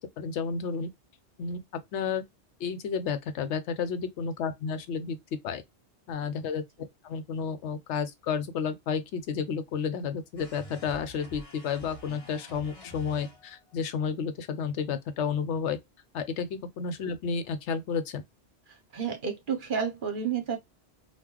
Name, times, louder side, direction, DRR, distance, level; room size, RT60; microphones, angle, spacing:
voice 1, 0.2-0.9 1.4-1.6 1.9-2.2 2.6-5.2 5.4-5.6 6.1-6.6 7.0-15.8 16.1-18.2, left 6 dB, 80° left, 0.9 m, -31 dB
sound 1, 10.4-13.7, equal, 35° left, 0.9 m, -47 dB
voice 2, 18.7-20.6, right 7 dB, 50° right, 0.8 m, -31 dB
3.0 x 2.4 x 3.6 m
omnidirectional pair, 1.2 m